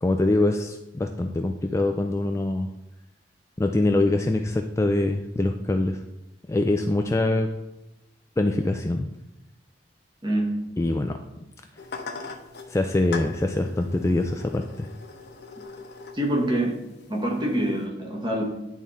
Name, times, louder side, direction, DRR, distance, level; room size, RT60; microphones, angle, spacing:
voice 1, 0.0-2.7 3.6-6.0 6.5-7.5 8.4-9.1 10.8-11.1 12.7-14.9, left 2 dB, 15° left, 5 dB, 0.3 m, -24 dB
voice 2, 10.2-10.6 16.1-16.8 17.1-18.4, right 1 dB, 25° right, 0 dB, 1.4 m, -25 dB
sound 1, 11.8-17.8, left 4 dB, 65° left, 0.8 m, -41 dB
10.5 x 3.6 x 4.1 m, 0.93 s
head